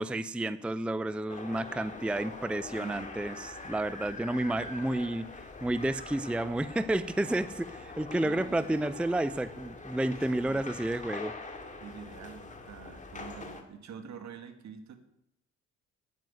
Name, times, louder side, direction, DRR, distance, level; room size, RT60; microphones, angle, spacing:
voice 1, 0.0-5.3 5.6-11.3, right 1 dB, 5° right, 14 dB, 0.5 m, -31 dB
sound 1, 1.3-13.6, left 3 dB, 25° left, 2.1 m, -44 dB
voice 2, 2.8-3.1 8.1-8.7 11.8-15.0, right 6 dB, 65° right, 8 dB, 2.1 m, -46 dB
9.4 x 9.3 x 9.6 m, 0.77 s
cardioid pair, 90°, 30 cm